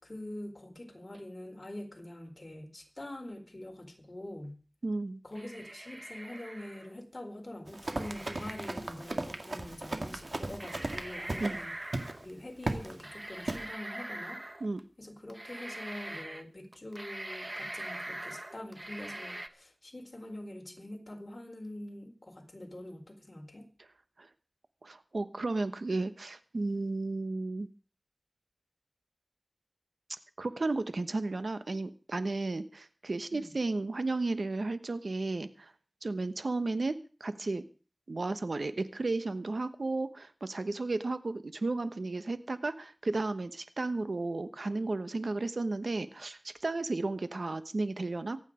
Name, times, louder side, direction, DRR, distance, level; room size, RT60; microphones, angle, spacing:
voice 1, 0.0-4.6 5.2-11.7 12.2-14.4 15.0-23.7 33.3-33.5, left 1 dB, 45° left, 2 dB, 4.2 m, -44 dB
voice 2, 4.8-5.2 11.4-11.6 14.6-14.8 24.2-24.3 24.8-27.7 30.4-35.7 36.0-37.6 38.1-48.4, right 3 dB, 85° right, 11 dB, 1.1 m, -33 dB
sound 1, 5.3-7.0 7.9-8.8 10.0-10.1 10.6-12.2 13.0-14.8 15.3-16.4 16.7-19.5, right 1 dB, 35° right, 1.2 m, -43 dB
Run, 7.7-11.6 11.9-12.1 12.6-12.9 13.5-13.6, right 2 dB, 65° right, 2.1 m, -36 dB
24.0 x 9.2 x 5.1 m, 0.38 s
wide cardioid pair, 50°, 0 cm